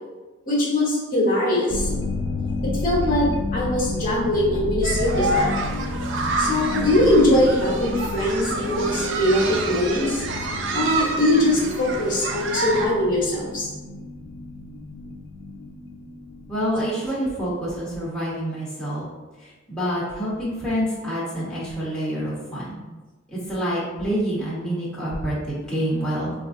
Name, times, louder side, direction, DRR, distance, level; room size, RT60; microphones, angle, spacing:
voice 1, 0.5-1.9 2.6-5.5 6.4-10.2 10.7-13.7, left 1 dB, 40° left, -5 dB, 0.8 m, -21 dB
sound 1, 1.7-16.9, left 2 dB, 75° left, 0.4 m, -31 dB
sound 2, 4.8-12.9, right 2 dB, 65° right, 0.4 m, -28 dB
voice 2, 16.5-19.0 19.4-22.8 23.3-26.3, equal, 5° left, -9 dB, 0.8 m, -27 dB
4.4 x 2.3 x 2.5 m, 1.2 s
head